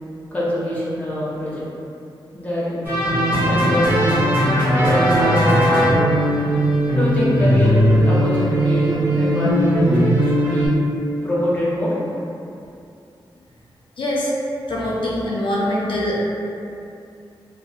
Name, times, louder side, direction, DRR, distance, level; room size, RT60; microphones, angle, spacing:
voice 1, 0.3-1.6 2.3-2.8 3.5-4.4 4.7-6.3 7.0-10.7 11.2-12.0, equal, 15° left, -7 dB, 0.5 m, -25 dB
sound 1, 2.8-10.7, equal, 25° right, 0.8 m, -18 dB
voice 2, 14.0-14.3 14.7-16.3, left 1 dB, 80° left, -5 dB, 0.4 m, -23 dB
2.6 x 2.0 x 2.3 m, 2.6 s
wide cardioid pair, 155°, 9 cm